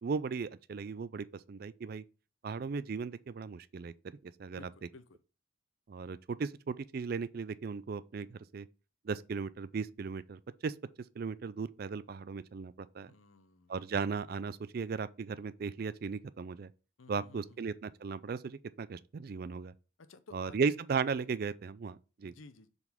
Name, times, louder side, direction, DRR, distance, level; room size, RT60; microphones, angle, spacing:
voice 1, 0.0-2.0 2.4-3.9 4.2-4.7 5.9-8.7 9.0-10.7 11.2-13.1 13.7-16.7 17.1-19.7 20.3-22.3, right 5 dB, 50° right, 0.4 m, -36 dB
voice 2, 4.5-5.2 13.0-13.7 17.0-17.6 20.1-20.6 22.2-22.7, left 3 dB, 85° left, 0.7 m, -55 dB
7.1 x 4.1 x 3.5 m
head